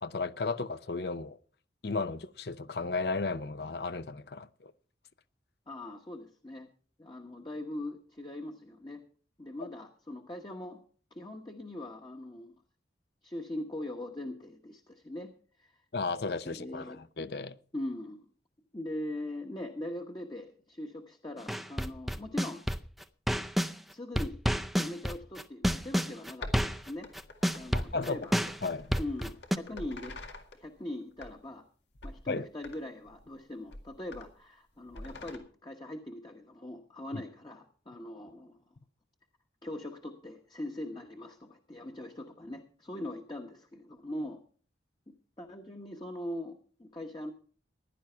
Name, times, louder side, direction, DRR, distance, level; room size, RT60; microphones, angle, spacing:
voice 1, 0.0-1.4 1.8-4.7 15.9-17.6 27.7-28.3 28.6-28.9 32.3-32.5 37.1-37.2, left 3 dB, 65° left, 0.7 m, -34 dB
voice 2, 5.7-6.7 7.0-9.0 9.4-10.8 11.1-12.5 13.2-15.3 15.6-15.7 16.4-17.0 17.7-18.3 18.7-22.6 23.9-24.4 24.7-27.1 27.5-28.4 29.0-30.1 30.5-31.6 32.0-38.6 39.6-44.4 45.1-47.3, left 1 dB, 25° left, 1.1 m, -41 dB
sound 1, 21.5-23.7 24.2-29.6, equal, ahead, 0.5 m, -29 dB
sound 2, 26.4-30.7 31.1-31.6 32.0-32.2 32.6-32.8 33.1-33.3 33.7-34.3 34.9-35.4, left 2 dB, 85° left, 2.0 m, -47 dB
15.5 x 11.0 x 4.4 m
head